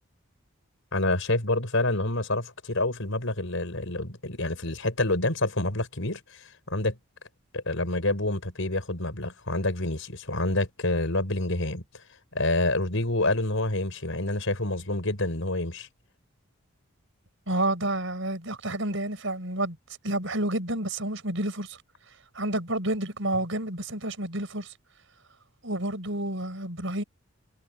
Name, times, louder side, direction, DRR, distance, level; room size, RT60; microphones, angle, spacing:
voice 1, 0.9-6.2 6.7-7.0 7.5-11.8 12.3-15.9, left 2 dB, 70° left, 4.8 m, -27 dB
voice 2, 17.5-19.8 20.0-21.8 22.3-24.7 25.6-27.0, right 1 dB, 65° right, 5.2 m, -29 dB
head